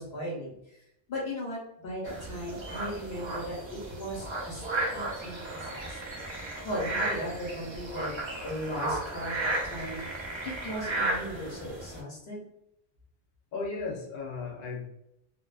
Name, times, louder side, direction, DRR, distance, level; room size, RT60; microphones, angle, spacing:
voice 1, 0.0-4.6 4.9-6.0 6.6-8.2 8.4-10.2 10.4-12.4, equal, 90° left, -4 dB, 1.3 m, -37 dB
sound 1, 2.0-12.0, right 2 dB, 40° right, 0.4 m, -34 dB
voice 2, 13.5-14.9, left 4 dB, 55° left, -1 dB, 0.7 m, -35 dB
2.4 x 2.2 x 2.3 m, 0.80 s
omnidirectional pair, 1.0 m